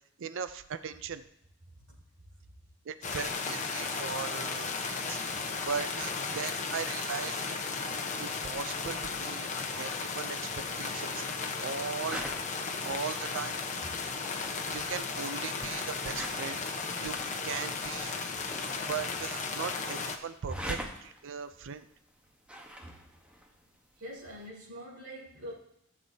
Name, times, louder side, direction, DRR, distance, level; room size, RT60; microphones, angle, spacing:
voice 1, 0.2-1.2 2.9-5.2 5.7-7.4 8.2-9.5 9.8-12.2 12.9-13.6 14.7-17.2 17.4-18.1 18.9-21.9, right 6 dB, 65° right, 12 dB, 0.5 m, -38 dB
sound 1, 3.0-20.2, left 4 dB, 35° left, 0.9 m, -35 dB
sound 2, 11.8-24.5, equal, 5° right, 1.1 m, -47 dB
voice 2, 24.0-25.5, equal, 85° right, -6 dB, 3.8 m, -43 dB
15.0 x 7.5 x 2.8 m, 0.77 s
head